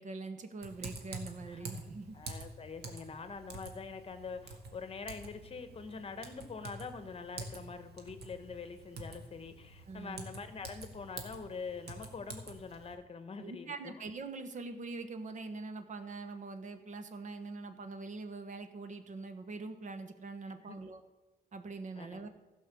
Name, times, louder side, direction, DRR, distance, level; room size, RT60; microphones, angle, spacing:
voice 1, 0.0-2.2 9.9-10.2 13.4-21.0 21.5-22.3, right 3 dB, 50° right, 9 dB, 1.1 m, -43 dB
Typing, 0.6-12.9, right 3 dB, 75° right, 1.8 m, -48 dB
voice 2, 2.1-13.9 20.7-20.8 21.9-22.3, left 5 dB, 35° left, 9 dB, 1.1 m, -44 dB
15.5 x 5.5 x 6.8 m, 1.2 s
wide cardioid pair, 155°, 17 cm